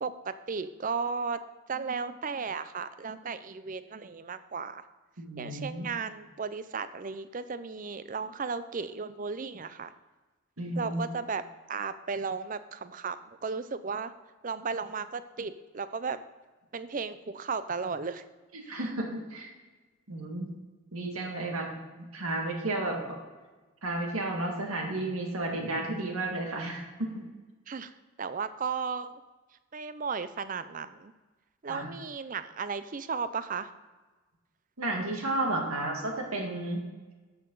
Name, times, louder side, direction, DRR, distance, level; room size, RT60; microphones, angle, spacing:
voice 1, 0.0-1.4 1.7-4.8 5.4-9.9 10.8-11.4 11.7-14.1 14.4-16.2 16.7-18.2 18.6-18.8 27.7-27.9 28.2-29.2 29.7-31.1 31.6-33.7, right 5 dB, 40° right, 13 dB, 0.5 m, -35 dB
voice 2, 5.2-5.9 10.6-11.0 18.5-19.5 20.1-20.5 20.9-23.2 23.8-27.2 31.7-31.9 34.8-36.8, right 2 dB, 85° right, 1 dB, 2.0 m, -32 dB
13.0 x 6.7 x 3.9 m, 1.3 s
head